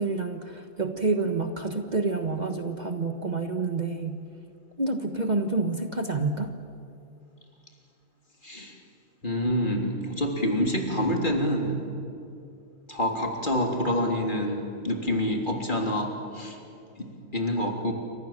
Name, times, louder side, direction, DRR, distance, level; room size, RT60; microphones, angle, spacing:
voice 1, 0.0-4.2 4.8-6.5, right 3 dB, 35° right, 5 dB, 1.4 m, -28 dB
voice 2, 8.4-8.8 9.2-11.8 12.9-16.6 17.0-17.9, equal, 40° left, 2 dB, 3.6 m, -27 dB
29.0 x 26.0 x 7.5 m, 2.7 s
omnidirectional pair, 1.3 m